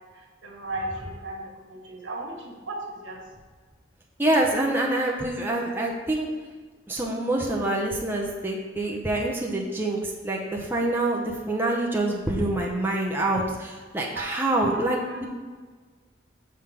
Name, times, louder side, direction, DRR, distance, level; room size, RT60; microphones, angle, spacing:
voice 1, 0.4-3.2 14.1-14.2 14.6-15.2, right 2 dB, 80° right, -1 dB, 1.5 m, -36 dB
voice 2, 4.2-6.3 6.9-15.3, right 1 dB, 10° right, -2 dB, 0.7 m, -26 dB
6.4 x 3.6 x 5.7 m, 1.4 s
head